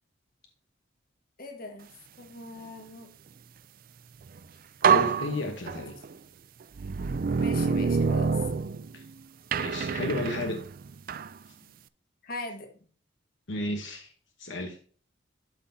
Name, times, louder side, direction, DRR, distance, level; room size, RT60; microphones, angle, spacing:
voice 1, 1.4-1.9 2.2-3.1 5.7-5.8 7.4-8.5 12.2-12.7, left 2 dB, 50° left, 4 dB, 1.5 m, -40 dB
sound 1, 4.3-4.4 4.8-6.1 6.8-9.1 9.5-11.3, right 6 dB, 45° right, 0.4 m, -26 dB
voice 2, 4.9-5.9 8.9-9.0 9.5-10.6 13.5-14.1 14.4-14.8, left 2 dB, 70° left, 3 dB, 1.2 m, -33 dB
12.0 x 5.8 x 2.8 m, 0.42 s
head